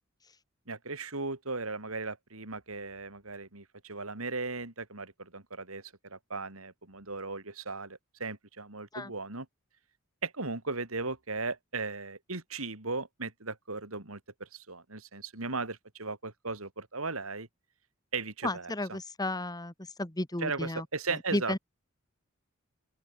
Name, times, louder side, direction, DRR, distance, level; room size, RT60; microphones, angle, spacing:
voice 1, 0.7-9.5 10.2-17.5 18.1-18.7 20.4-21.6, right 3 dB, 85° right, 4.0 m, -37 dB
voice 2, 18.4-19.7 20.0-20.9 21.3-21.6, left 1 dB, 20° left, 1.8 m, -33 dB
open air
head